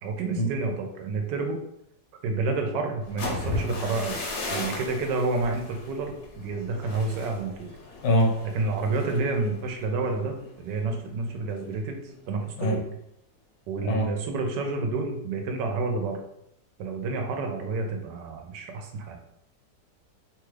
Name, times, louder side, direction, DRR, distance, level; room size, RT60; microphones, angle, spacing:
voice 1, 0.0-1.6 2.2-7.7 8.5-12.0 12.3-12.8 13.7-16.2 16.8-19.2, right 3 dB, 85° right, 3 dB, 1.2 m, -29 dB
sound 1, 3.0-10.9 11.2-11.6 11.9-12.3, left 2 dB, 55° left, 0.8 m, -36 dB
voice 2, 8.0-8.4 12.6-12.8 13.8-14.1, equal, 80° left, 1 dB, 1.3 m, -22 dB
3.0 x 2.3 x 3.2 m, 0.77 s
omnidirectional pair, 1.9 m